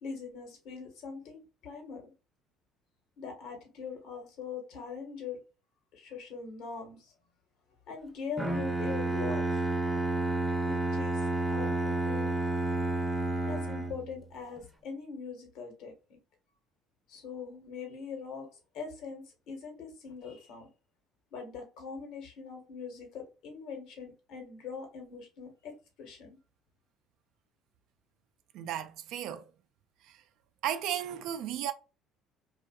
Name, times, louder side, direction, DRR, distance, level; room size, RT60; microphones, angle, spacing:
voice 1, 0.0-2.1 3.2-5.4 5.9-7.1 7.9-9.6 10.6-12.3 13.5-16.2 17.1-20.7 21.3-25.7 26.0-26.4, left 5 dB, 70° left, 1.1 m, -42 dB
Bowed string instrument, 8.4-14.2, right 2 dB, 5° right, 0.6 m, -30 dB
voice 2, 28.5-29.4 30.1-30.2 30.6-31.7, right 10 dB, 70° right, 0.4 m, -34 dB
2.6 x 2.4 x 2.3 m
supercardioid pair, 85°, 0 cm